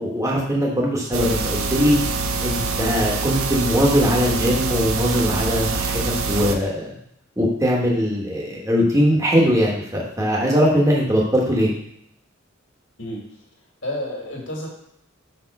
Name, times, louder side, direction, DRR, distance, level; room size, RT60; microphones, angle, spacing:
voice 1, 0.0-2.0 2.4-5.9 6.3-6.9 7.4-11.7, equal, 15° right, -3 dB, 1.2 m, -20 dB
sound 1, 1.1-6.5, right 4 dB, 90° right, 0.7 m, -25 dB
voice 2, 13.0-13.4 13.8-14.7, left 1 dB, 60° left, -2 dB, 2.0 m, -30 dB
5.2 x 4.4 x 5.4 m, 0.73 s
head